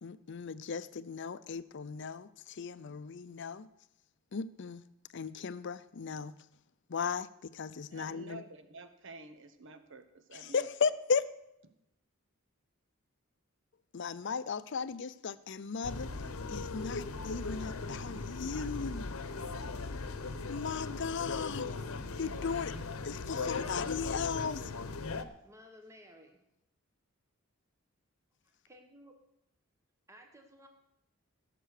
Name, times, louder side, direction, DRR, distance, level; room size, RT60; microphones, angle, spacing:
voice 1, 0.0-3.7 4.3-4.8 5.1-6.4 6.9-8.4 10.5-11.2 13.9-16.1 16.5-19.1 20.5-21.7 22.2-22.7 23.0-24.7, left 5 dB, 55° left, 15 dB, 0.5 m, -36 dB
voice 2, 7.9-10.7, right 3 dB, 60° right, 8 dB, 1.1 m, -50 dB
sound 1, 15.8-25.2, left 3 dB, 85° left, 0.9 m, -38 dB
voice 3, 25.4-26.4 28.4-29.2 30.1-30.7, equal, 15° right, 4 dB, 1.3 m, -56 dB
16.5 x 6.8 x 6.6 m, 0.82 s
head